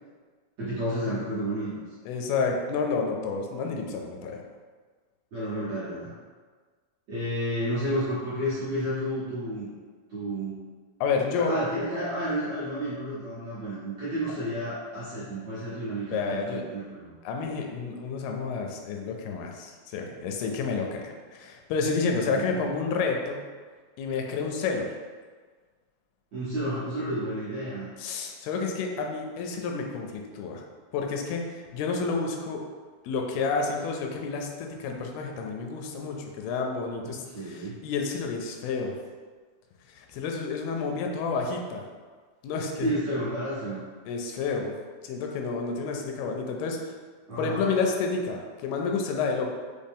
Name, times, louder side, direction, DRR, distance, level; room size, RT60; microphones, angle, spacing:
voice 1, 0.6-1.7 5.3-6.1 7.1-9.7 10.1-10.5 11.3-17.1 22.3-22.6 26.3-27.9 37.0-37.8 42.8-43.8 47.3-47.7, equal, 65° right, -12 dB, 1.7 m, -31 dB
voice 2, 2.1-4.4 11.0-11.5 16.1-16.7 17.2-23.4 24.0-24.9 28.0-30.6 30.9-32.6 33.0-39.0 39.9-41.8 42.4-42.9 44.1-44.7 45.0-46.9 47.4-49.6, left 4 dB, 85° left, 2 dB, 2.4 m, -30 dB
6.1 x 2.3 x 3.5 m, 1.5 s
omnidirectional pair, 4.4 m